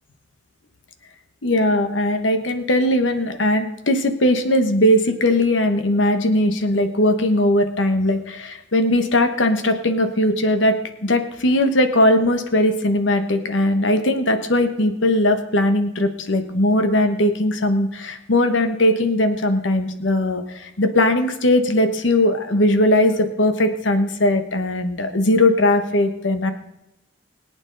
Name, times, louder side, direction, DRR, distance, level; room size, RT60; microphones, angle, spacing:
voice 1, 1.4-26.5, left 1 dB, 85° left, 8 dB, 1.1 m, -19 dB
22.0 x 9.0 x 3.9 m, 0.86 s
head